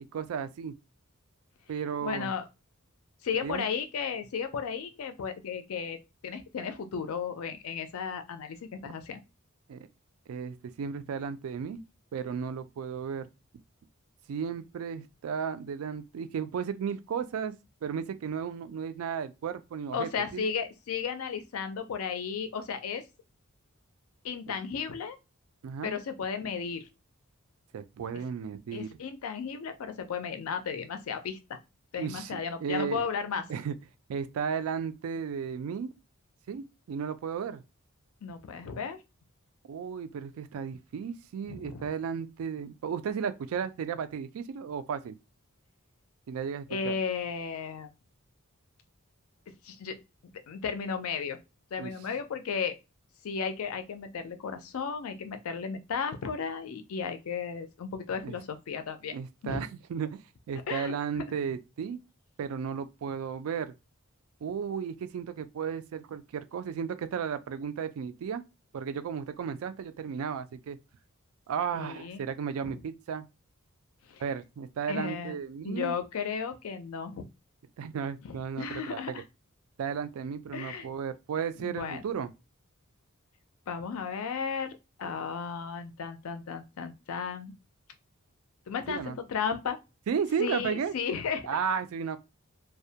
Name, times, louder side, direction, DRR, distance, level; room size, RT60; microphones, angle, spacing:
voice 1, 0.1-0.7 1.7-2.3 3.4-3.7 9.7-9.9 10.3-11.8 12.1-13.3 14.3-17.5 17.8-20.4 24.5-24.6 25.6-25.9 27.7-28.9 32.0-33.0 33.5-33.7 34.1-35.9 36.5-37.6 39.7-45.2 46.3-46.9 51.8-51.9 58.2-58.4 59.1-60.2 60.5-62.0 62.4-63.7 64.4-68.4 68.7-70.8 71.5-73.3 74.2-75.9 77.8-79.0 79.8-82.3 88.9-89.1 90.1-90.9 91.5-92.2, right 7 dB, 70° right, 0.3 m, -34 dB
voice 2, 2.0-2.5 3.2-9.2 19.9-23.1 24.2-25.2 25.8-26.9 28.7-31.6 31.9-33.5 38.2-39.0 41.5-41.9 46.7-47.9 49.5-50.0 50.3-51.4 51.7-52.8 53.2-59.2 59.4-59.6 60.6-61.3 71.7-72.2 72.6-72.8 74.1-74.2 74.9-75.4 75.6-77.2 78.2-79.2 80.5-80.9 81.6-82.0 83.7-87.5 88.7-89.8 90.4-91.5, left 6 dB, 70° left, 0.4 m, -34 dB
2.2 x 2.1 x 2.7 m
head